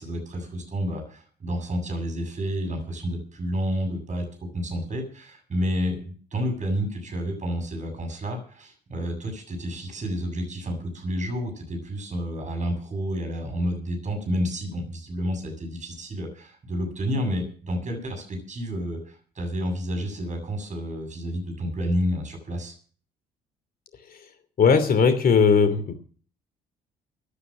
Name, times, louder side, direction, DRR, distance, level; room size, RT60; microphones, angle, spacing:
voice 1, 0.0-4.2 4.5-22.7, equal, 35° right, 5 dB, 7.6 m, -30 dB
voice 2, 24.6-25.9, left 5 dB, 45° left, 10 dB, 2.9 m, -19 dB
17.0 x 10.0 x 6.4 m, 0.43 s
figure-of-eight pair, 50°, 21 cm